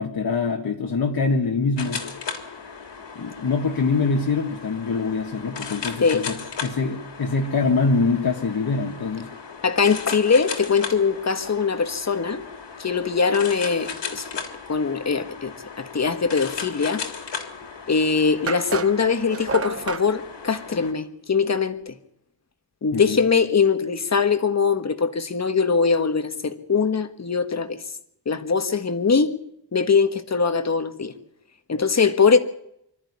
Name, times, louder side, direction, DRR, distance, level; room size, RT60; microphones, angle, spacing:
voice 1, 0.0-2.0 3.2-9.3 22.9-23.2, left 4 dB, 55° left, 1.9 m, -24 dB
sound 1, 1.8-20.9, left 6 dB, 80° left, 3.2 m, -36 dB
voice 2, 9.6-12.4 12.8-14.3 14.7-17.0 17.9-21.9 22.8-27.8 28.2-29.3 29.7-31.1 31.7-32.4, left 5 dB, 40° left, 1.6 m, -22 dB
sound 2, 17.6-17.7 18.5-20.1, right 5 dB, 35° right, 0.9 m, -30 dB
25.0 x 13.5 x 9.7 m
wide cardioid pair, 165°, 42 cm